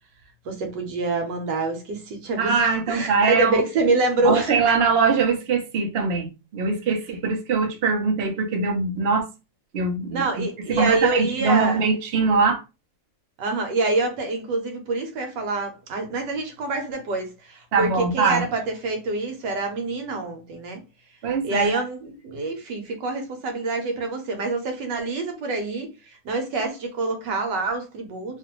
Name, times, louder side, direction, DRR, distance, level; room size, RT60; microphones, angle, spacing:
voice 1, 0.4-4.6 10.1-11.8 13.4-20.8 21.4-25.9 26.2-28.4, right 3 dB, 75° right, 1.4 m, -26 dB
voice 2, 2.4-3.6 4.2-9.3 9.7-10.2 10.7-12.6 17.7-18.4 21.2-21.8, right 4 dB, 55° right, 0.7 m, -22 dB
3.0 x 2.5 x 2.9 m
omnidirectional pair, 1.9 m